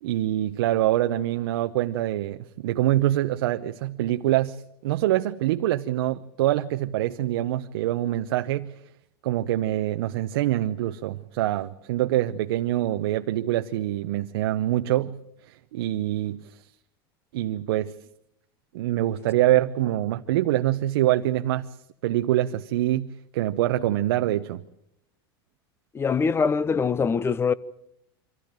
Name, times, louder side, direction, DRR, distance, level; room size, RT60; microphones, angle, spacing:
voice 1, 0.0-8.7 9.2-15.2 15.5-16.7 17.3-17.9 18.7-21.7 22.0-24.6, right 14 dB, 80° right, 0.8 m, -25 dB
voice 2, 25.9-27.5, left 5 dB, 20° left, 0.8 m, -23 dB
24.5 x 15.0 x 9.0 m
supercardioid pair, 120°, 13 cm